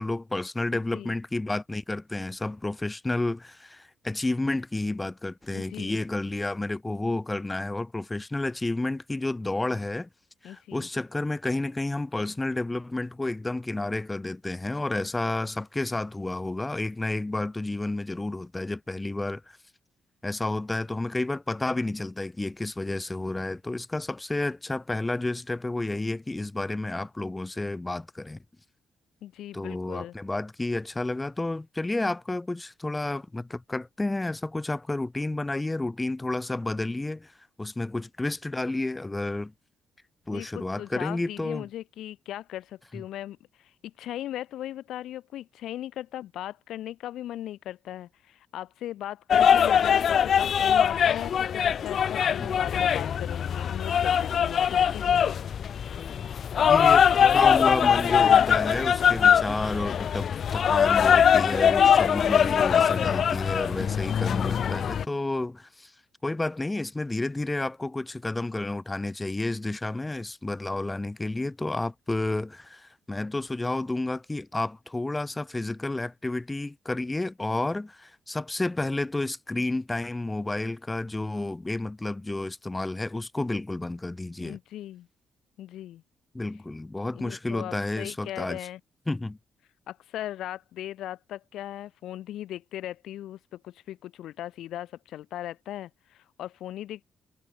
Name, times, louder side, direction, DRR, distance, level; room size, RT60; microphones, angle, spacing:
voice 1, 0.0-10.1 10.4-19.6 20.2-28.4 29.5-37.3 37.6-39.5 40.3-41.7 42.9-43.0 52.4-52.6 56.7-65.9 66.2-84.6 86.3-88.6 89.1-89.4, left 2 dB, 15° left, 4.2 m, -31 dB
voice 2, 0.7-1.2 5.5-6.0 10.4-10.9 29.2-30.1 40.3-55.5 84.4-85.1 85.6-86.0 87.1-88.8 89.9-97.0, left 12 dB, 80° left, 2.1 m, -38 dB
sound 1, 49.3-65.0, left 8 dB, 55° left, 0.8 m, -22 dB
cardioid pair, 90°, 0 cm